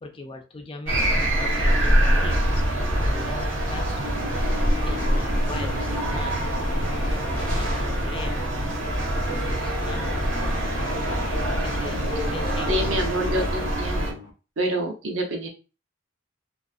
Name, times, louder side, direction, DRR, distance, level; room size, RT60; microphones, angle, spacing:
voice 1, 0.0-2.6 3.0-4.0 4.9-6.4 7.1-10.5 11.5-13.0, left 3 dB, 25° left, 5 dB, 0.3 m, -40 dB
sound 1, 0.9-14.1, right 1 dB, 90° right, 1.1 m, -24 dB
sound 2, 3.2-14.3, left 2 dB, 70° left, 0.7 m, -37 dB
voice 2, 12.7-14.2 14.6-15.5, right 1 dB, 70° right, 2 dB, 0.7 m, -27 dB
2.4 x 2.4 x 2.4 m, 0.33 s
head